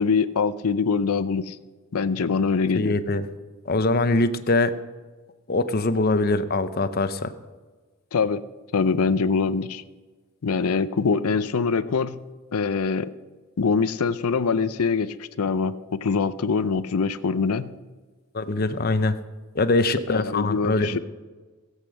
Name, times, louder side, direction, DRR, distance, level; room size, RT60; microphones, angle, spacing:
voice 1, 0.0-1.6 1.9-3.0 8.1-8.4 8.7-9.8 10.4-12.2 12.5-13.1 13.6-17.7 20.1-21.0, left 5 dB, 80° left, 14 dB, 0.6 m, -24 dB
voice 2, 2.7-3.2 3.7-4.7 5.5-7.3 18.3-19.2 19.5-21.0, left 2 dB, 45° left, 11 dB, 0.7 m, -23 dB
17.5 x 8.2 x 6.5 m, 1.3 s
head